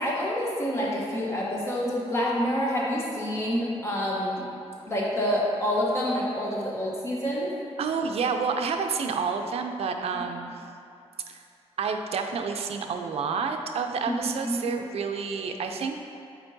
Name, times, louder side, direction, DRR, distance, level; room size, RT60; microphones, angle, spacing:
voice 1, 0.0-4.5 4.9-7.5 14.1-14.2 14.4-14.7, equal, 25° left, -5 dB, 1.1 m, -27 dB
voice 2, 7.8-10.5 11.3-11.4 11.8-16.0, right 5 dB, 65° right, 5 dB, 0.4 m, -29 dB
7.9 x 4.4 x 2.7 m, 2.6 s
wide cardioid pair, 150°, 11 cm